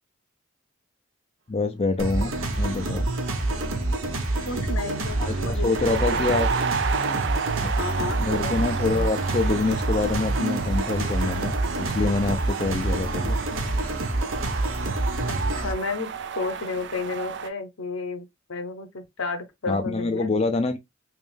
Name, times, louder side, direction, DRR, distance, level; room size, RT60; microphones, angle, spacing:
voice 1, 1.5-3.1 5.2-6.5 7.6-7.7 8.2-13.4 19.7-20.8, left 3 dB, 30° left, 0.4 m, -26 dB
sound 1, 2.0-15.7, right 2 dB, 80° right, 1.1 m, -27 dB
sound 2, 2.9-3.0 3.2-17.5, right 6 dB, 55° right, 0.4 m, -32 dB
voice 2, 4.5-6.4 7.6-8.5 15.2-16.1 16.4-20.3, left 3 dB, 80° left, 0.9 m, -32 dB
3.4 x 3.1 x 3.4 m
head